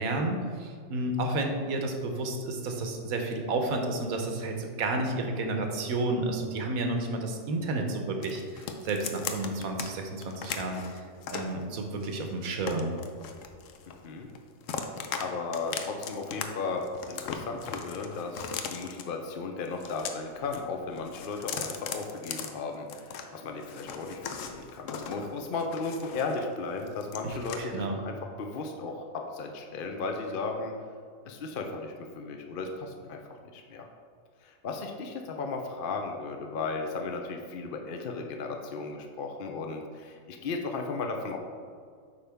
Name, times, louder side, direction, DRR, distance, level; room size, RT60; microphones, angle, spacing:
voice 1, 0.0-10.8 11.3-13.0 27.2-28.0, right 2 dB, 85° right, 3 dB, 1.3 m, -31 dB
sound 1, 8.2-9.9 10.2-11.5 12.0-14.1 14.3-15.2 15.5-16.4 16.7-19.0 19.7-20.6 20.9-23.2 23.6-26.5 26.8-27.6, left 7 dB, 70° left, 1.0 m, -38 dB
voice 2, 13.9-14.3 15.2-30.7 31.3-33.2 33.5-33.9 34.4-41.4, left 4 dB, 55° left, 3 dB, 0.7 m, -35 dB
8.3 x 5.4 x 3.5 m, 2.1 s
omnidirectional pair, 1.4 m